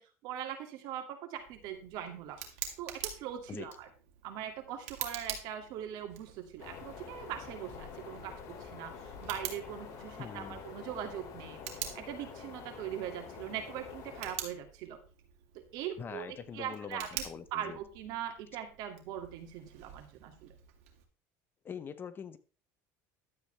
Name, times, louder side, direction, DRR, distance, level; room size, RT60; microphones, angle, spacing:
voice 1, 0.2-2.4 2.8-3.9 4.2-11.6 11.9-15.0 15.7-17.2 17.5-20.5, right 10 dB, 70° right, 2.3 m, -41 dB
Tick, 1.4-21.0, right 10 dB, 85° right, 2.3 m, -47 dB
sound 1, 6.6-14.4, left 6 dB, 50° left, 2.9 m, -47 dB
voice 2, 10.2-10.6 16.0-17.8 21.6-22.4, left 7 dB, 30° left, 0.8 m, -43 dB
12.0 x 8.2 x 3.4 m
supercardioid pair, 120°, 7 cm